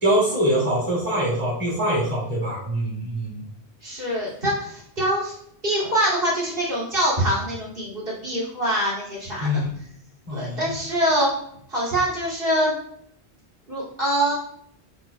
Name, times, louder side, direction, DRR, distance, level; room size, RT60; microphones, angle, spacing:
voice 1, 0.0-3.4 9.4-9.7 10.3-10.7, equal, 35° right, -7 dB, 2.6 m, -24 dB
voice 2, 3.8-5.4 5.6-9.6 10.3-11.3 11.7-12.7 13.7-14.3, right 1 dB, 55° right, -6 dB, 2.9 m, -24 dB
12.0 x 5.0 x 2.3 m, 0.70 s
omnidirectional pair, 1.1 m